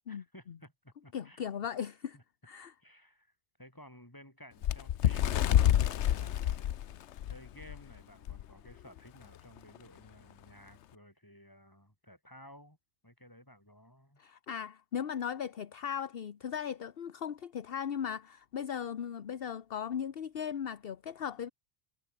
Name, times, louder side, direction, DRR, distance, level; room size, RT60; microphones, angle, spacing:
voice 1, 0.1-1.4 2.1-2.2 2.8-3.3 3.6-6.7 7.3-12.8 13.0-14.2, equal, 20° left, 7.0 m, -55 dB
voice 2, 1.1-2.2 2.5-2.7 14.2-21.5, left 8 dB, 60° left, 1.1 m, -37 dB
Bird, 4.6-7.8 8.3-8.4 8.7-9.0 9.8-9.9, left 11 dB, 90° left, 1.0 m, -28 dB
omnidirectional pair, 1.1 m